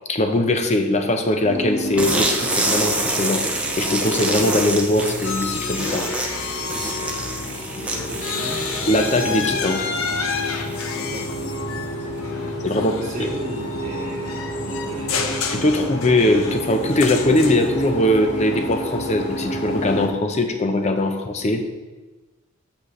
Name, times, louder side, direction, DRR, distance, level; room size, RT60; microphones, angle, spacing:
voice 1, 0.1-3.4 3.8-6.1 8.9-9.8 12.6-13.3 15.5-21.6, left 1 dB, 30° left, 6 dB, 0.6 m, -21 dB
sound 1, 1.4-20.1, left 1 dB, 50° left, 1.1 m, -31 dB
sound 2, 2.0-11.5, right 2 dB, 5° right, 0.6 m, -27 dB
sound 3, 5.2-7.6 7.9-17.8, left 5 dB, 75° left, 0.7 m, -30 dB
voice 2, 7.8-8.6 10.9-12.4 12.7-15.2, equal, 30° right, -4 dB, 1.7 m, -35 dB
8.0 x 6.7 x 3.2 m, 1.2 s
head